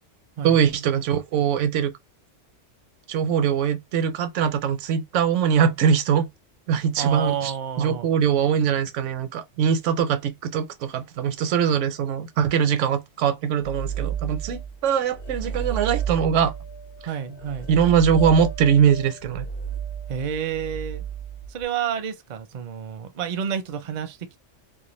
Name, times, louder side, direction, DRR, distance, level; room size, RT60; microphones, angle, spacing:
voice 1, 0.4-1.9 3.1-6.3 6.7-7.5 7.8-16.5 17.7-19.5, right 7 dB, 80° right, 0.9 m, -22 dB
voice 2, 7.0-8.1 17.0-17.7 20.1-21.0 21.5-24.2, right 8 dB, 55° right, 0.5 m, -29 dB
sound 1, 13.6-14.8 15.1-21.6, right 7 dB, 45° left, 0.6 m, -32 dB
2.4 x 2.2 x 3.0 m
omnidirectional pair, 1.2 m